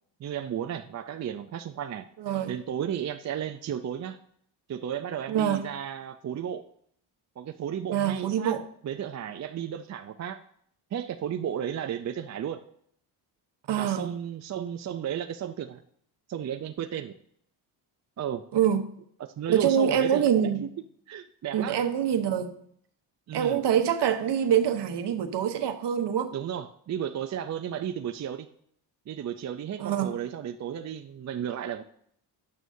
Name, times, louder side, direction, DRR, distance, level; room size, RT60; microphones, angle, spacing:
voice 1, 0.2-2.0 2.5-4.2 4.7-6.7 7.4-8.6 8.8-10.4 10.9-12.6 13.8-15.8 16.3-17.1 18.2-18.5 19.4-20.7 21.1-21.8 23.3-23.6 26.3-28.5 29.1-31.8, right 9 dB, 35° right, 0.5 m, -33 dB
voice 2, 2.2-2.5 5.3-5.7 7.9-8.6 13.7-14.0 18.5-18.9 19.5-20.7 21.5-22.5 23.3-26.3 29.8-30.1, right 9 dB, 60° right, 1.1 m, -25 dB
11.0 x 9.1 x 2.7 m
supercardioid pair, 65°, 48 cm